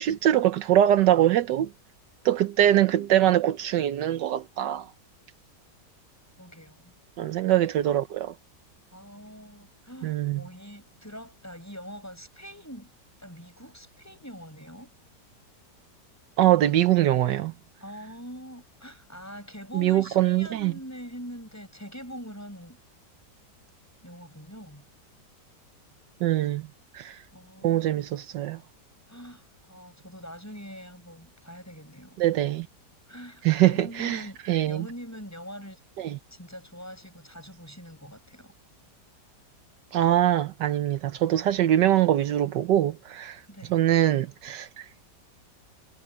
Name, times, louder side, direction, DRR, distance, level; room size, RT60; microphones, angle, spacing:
voice 1, 0.0-1.7 2.2-4.9 7.2-8.3 10.0-10.4 16.4-17.5 19.7-20.7 26.2-26.6 26.9-27.2 27.6-28.6 32.2-32.7 33.4-34.2 34.5-34.9 36.0-36.2 39.9-43.4 43.7-44.8, right 12 dB, 80° right, 1.4 m, -23 dB
voice 2, 6.4-6.9 8.9-12.9 13.2-14.9 17.8-22.8 24.0-24.9 27.3-28.0 29.1-32.2 33.1-34.4 34.6-35.8 36.3-38.5 43.5-43.8, equal, 10° left, 7.6 m, -43 dB
omnidirectional pair, 1.9 m